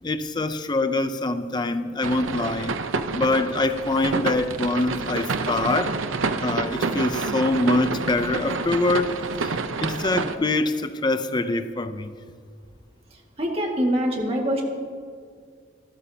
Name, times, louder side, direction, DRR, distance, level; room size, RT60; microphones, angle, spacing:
voice 1, 0.0-2.8 3.1-6.0 6.4-9.1 9.4-12.1, left 2 dB, 20° left, 10 dB, 0.5 m, -24 dB
sound 1, 2.0-10.4, right 4 dB, 90° right, 0.7 m, -28 dB
voice 2, 13.4-14.6, equal, 30° right, 0 dB, 1.8 m, -24 dB
26.0 x 13.0 x 2.8 m, 2.1 s
head